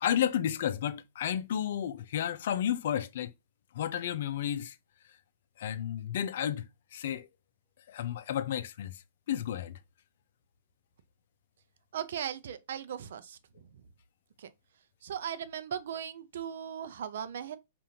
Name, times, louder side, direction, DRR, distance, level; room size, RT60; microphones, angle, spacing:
voice 1, 0.0-3.3 3.7-4.8 5.6-7.3 7.9-9.0 9.3-9.8, left 10 dB, 60° left, 0.5 m, -32 dB
voice 2, 11.9-13.4 14.4-14.5 15.0-17.6, right 9 dB, 65° right, 0.6 m, -38 dB
5.1 x 2.5 x 2.8 m
hypercardioid pair, 145°, 0 cm